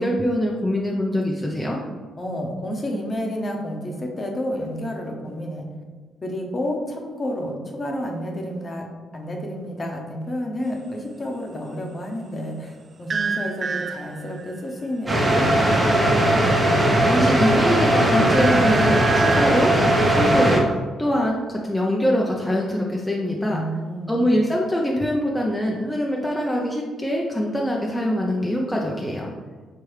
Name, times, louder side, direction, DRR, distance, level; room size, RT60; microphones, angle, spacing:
voice 1, 0.0-1.8 17.0-19.7 20.1-20.6 21.0-23.6 24.1-29.3, equal, 5° left, -2 dB, 0.5 m, -23 dB
voice 2, 2.2-5.6 6.2-8.9 9.1-16.4 23.5-24.3, equal, 30° left, 1 dB, 0.9 m, -30 dB
sound 1, 13.1-14.6 16.6-17.3 17.7-19.5, right 5 dB, 45° right, 0.3 m, -29 dB
sound 2, 15.1-20.6, right 1 dB, 20° right, 1.1 m, -18 dB
4.7 x 3.3 x 3.2 m, 1.4 s
cardioid pair, 90°, 0 cm